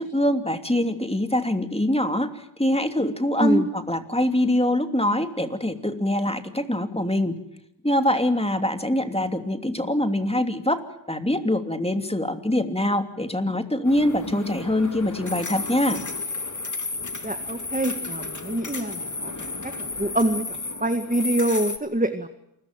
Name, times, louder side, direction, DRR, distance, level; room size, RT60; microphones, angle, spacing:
voice 1, 0.0-7.3 7.8-10.8 11.1-16.0, left 1 dB, 15° left, 7 dB, 2.9 m, -24 dB
sound 1, 13.8-21.8, left 3 dB, 40° left, 2.5 m, -33 dB
voice 2, 17.2-19.3 20.0-20.4 20.8-22.3, right 1 dB, 20° right, 8 dB, 1.9 m, -25 dB
28.0 x 22.0 x 7.5 m, 0.82 s
wide cardioid pair, 50°, 45 cm